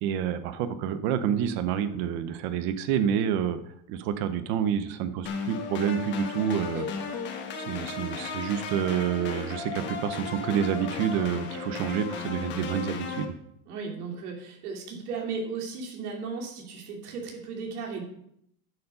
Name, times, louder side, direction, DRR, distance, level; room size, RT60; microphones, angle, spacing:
voice 1, 0.0-3.6 3.9-6.9 7.6-13.3, right 8 dB, 30° right, 12 dB, 0.5 m, -28 dB
sound 1, 5.3-13.3, left 5 dB, 25° left, 1.1 m, -35 dB
voice 2, 13.7-18.0, right 4 dB, 85° right, 0 dB, 3.2 m, -35 dB
10.5 x 7.0 x 5.4 m, 0.72 s
supercardioid pair, 180°, 44 cm